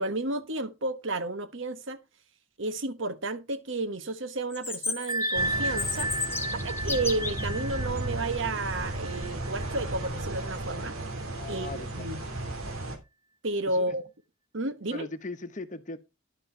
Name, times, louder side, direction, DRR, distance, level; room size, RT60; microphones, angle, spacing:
voice 1, 0.0-2.0 2.6-6.1 6.6-11.0 11.5-12.2 13.4-14.0 14.5-15.1, right 2 dB, 65° right, 1.2 m, -32 dB
Chirp tweet, 4.5-7.5, left 4 dB, 10° left, 1.4 m, -33 dB
Bell, 5.1-10.5, right 1 dB, 20° right, 0.5 m, -34 dB
sound 1, 5.4-13.0, right 1 dB, 80° right, 2.9 m, -35 dB
voice 2, 11.3-11.9 13.7-14.0 14.9-16.0, left 2 dB, 35° left, 1.1 m, -38 dB
11.0 x 7.7 x 4.5 m
head